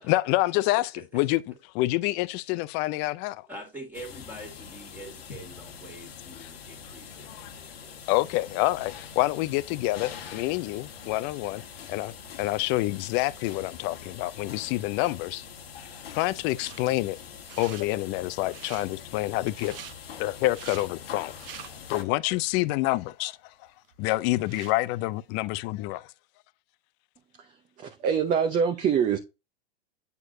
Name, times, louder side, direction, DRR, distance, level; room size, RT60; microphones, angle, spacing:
voice 1, 0.0-1.4 1.8-3.5 7.3-7.5 8.1-11.6 11.9-12.1 12.4-15.4 16.1-17.2 17.6-19.7 20.2-21.3 21.9-23.5 24.0-26.1, left 18 dB, 35° left, 0.4 m, -27 dB
voice 2, 3.5-8.1, right 1 dB, 5° right, 1.9 m, -45 dB
sound 1, 3.9-22.0, left 7 dB, 85° left, 1.3 m, -44 dB
sound 2, 16.6-16.8 17.3-17.9 18.4-18.9 19.5-20.0 20.4-20.9 21.3-22.0 22.5-22.6 23.3-23.4 23.7-24.8, right 9 dB, 65° right, 1.0 m, -45 dB
voice 3, 27.8-29.2, right 7 dB, 25° right, 0.7 m, -24 dB
8.2 x 4.5 x 2.6 m
hypercardioid pair, 115°, 30 cm